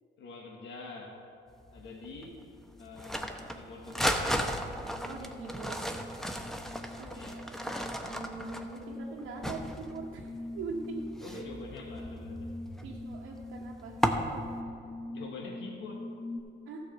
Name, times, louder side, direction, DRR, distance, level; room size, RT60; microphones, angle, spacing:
voice 1, 0.2-1.2 1.7-2.4 2.8-4.2 7.1-7.4 11.2-12.5 15.1-16.1, left 3 dB, 70° left, 0 dB, 1.4 m, -45 dB
sound 1, 0.9-1.2 1.6-16.4, left 2 dB, 55° left, 1.5 m, -45 dB
sound 2, 1.6-14.6, equal, ahead, 0.8 m, -36 dB
voice 2, 5.0-5.8 7.0-11.6 12.8-14.2 14.6-14.7 16.6-16.8, right 4 dB, 85° right, -3 dB, 1.1 m, -43 dB
13.0 x 4.8 x 6.9 m, 2.6 s
cardioid pair, 90°, 20 cm